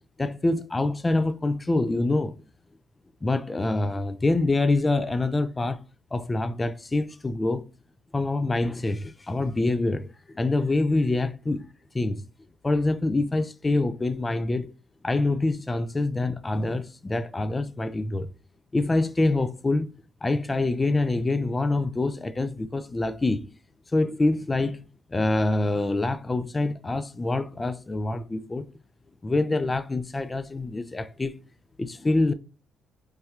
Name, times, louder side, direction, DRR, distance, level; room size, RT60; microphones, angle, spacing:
voice 1, 0.2-2.4 3.2-5.8 6.1-7.6 8.1-11.7 11.9-12.2 12.6-14.7 15.0-18.3 18.7-19.9 20.2-23.5 23.9-28.7 29.2-31.3 31.8-32.3, left 2 dB, 25° left, 0.3 m, -25 dB
3.3 x 2.2 x 2.9 m
supercardioid pair, 60°, 0 cm